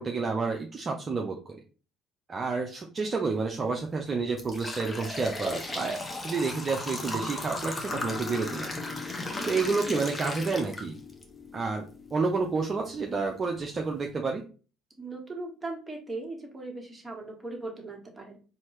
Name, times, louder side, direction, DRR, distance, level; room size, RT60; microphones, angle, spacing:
voice 1, 0.0-1.6 2.3-8.7 9.5-11.0 11.5-11.8 12.1-14.4, right 4 dB, 35° right, 1 dB, 0.6 m, -30 dB
sound 1, 3.4-3.6 4.1-11.2 11.7-11.8 12.7-12.8 13.3-13.4 13.8-14.0, left 2 dB, 20° left, 1.0 m, -36 dB
sound 2, 7.6-13.5, left 7 dB, 45° left, 0.5 m, -45 dB
voice 2, 15.0-18.4, right 2 dB, 15° right, 1 dB, 1.5 m, -38 dB
4.3 x 2.7 x 3.1 m, 0.36 s
hypercardioid pair, 60°, 0 cm